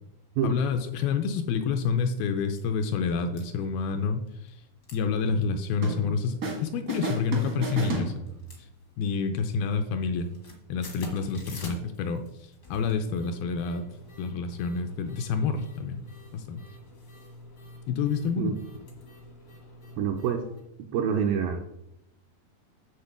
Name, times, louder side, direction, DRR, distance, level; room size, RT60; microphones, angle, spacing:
voice 1, 0.4-4.6 4.9-8.2 9.0-10.3 10.7-13.9 14.2-16.0 16.3-16.6 17.9-18.5, left 5 dB, 80° left, 6 dB, 2.3 m, -28 dB
sound 1, 1.3-1.4 1.9-2.0 2.2-2.7 3.1-3.4 4.3-4.6 4.8-5.0 5.3-5.4 5.9-6.3 7.0-7.5 7.9-9.2 9.5-9.8 10.1-20.6, left 1 dB, 60° left, 1.0 m, -47 dB
sound 2, 5.8-6.6 6.9-8.6, right 3 dB, 60° right, 0.9 m, -33 dB
voice 2, 20.0-20.5 20.8-21.6, right 7 dB, 80° right, 3 dB, 2.1 m, -27 dB
9.6 x 3.7 x 7.2 m, 0.84 s
omnidirectional pair, 4.7 m